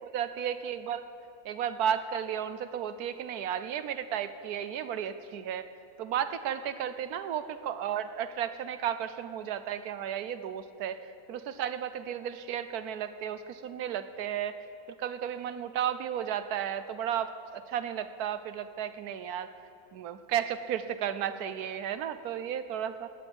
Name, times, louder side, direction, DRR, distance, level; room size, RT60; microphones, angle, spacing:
voice 1, 0.1-1.0 1.4-5.7 6.0-14.5 15.0-19.5 19.9-23.1, right 9 dB, 85° right, 11 dB, 1.2 m, -33 dB
18.0 x 7.1 x 9.6 m, 2.6 s
omnidirectional pair, 1.6 m